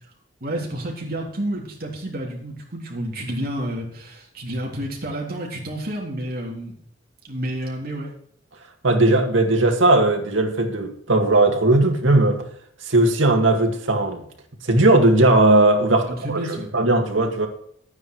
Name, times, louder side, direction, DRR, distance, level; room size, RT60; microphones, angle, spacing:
voice 1, 0.4-6.7 7.2-8.1 15.9-16.7, right 1 dB, 50° right, 3.4 m, -30 dB
voice 2, 8.8-12.4 12.8-14.2 14.6-16.4 16.7-17.5, right 2 dB, 90° right, 2.1 m, -17 dB
11.5 x 9.4 x 4.6 m
head